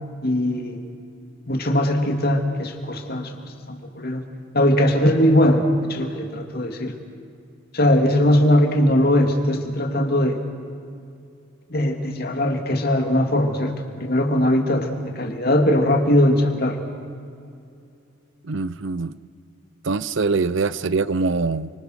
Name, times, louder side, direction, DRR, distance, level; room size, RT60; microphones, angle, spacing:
voice 1, 0.2-0.8 1.5-3.3 3.7-4.2 4.5-6.9 7.7-10.4 11.7-13.7 14.0-16.8, left 1 dB, 50° left, 4 dB, 2.5 m, -20 dB
voice 2, 18.5-19.1 19.8-21.7, right 4 dB, 60° right, 17 dB, 0.6 m, -23 dB
30.0 x 24.5 x 6.5 m, 2.5 s
head